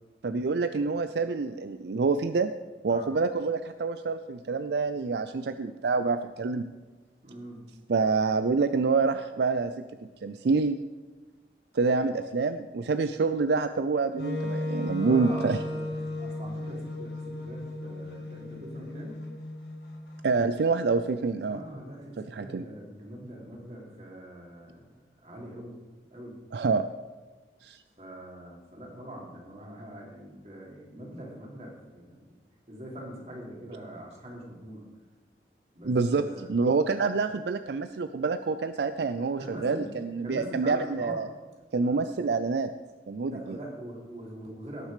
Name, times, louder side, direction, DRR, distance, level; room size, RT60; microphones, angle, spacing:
voice 1, 0.2-2.5 2.8-6.7 7.9-9.7 10.2-10.8 11.7-15.6 20.2-21.6 22.2-22.6 26.5-26.8 27.6-27.8 35.8-41.3 41.7-42.7 43.1-43.6, right 4 dB, 75° right, 11 dB, 0.4 m, -27 dB
voice 2, 2.9-3.2 7.2-7.6 12.1-12.2 15.0-19.2 21.4-24.9 25.2-25.7 26.1-26.4 28.0-32.3 32.7-34.8 35.7-36.5 39.4-40.0 40.2-41.2 41.8-42.4 43.2-44.9, right 1 dB, 40° right, -2 dB, 3.1 m, -43 dB
Wind instrument woodwind instrument, 14.2-20.2, left 2 dB, 70° left, 2.2 m, -35 dB
18.0 x 6.4 x 5.0 m, 1.3 s
head